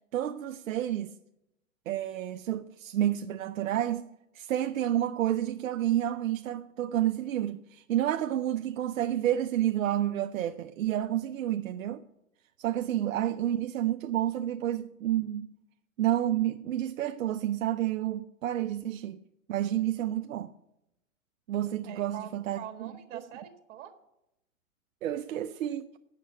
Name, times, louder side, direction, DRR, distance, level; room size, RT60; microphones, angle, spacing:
voice 1, 0.1-1.1 1.9-4.1 4.3-12.0 12.6-15.5 16.0-19.2 19.5-20.5 21.5-22.9 25.0-25.9, right 12 dB, 85° right, 0.5 m, -30 dB
voice 2, 21.8-23.9, right 10 dB, 60° right, 1.4 m, -44 dB
8.3 x 6.6 x 7.4 m
hypercardioid pair, 120°, 39 cm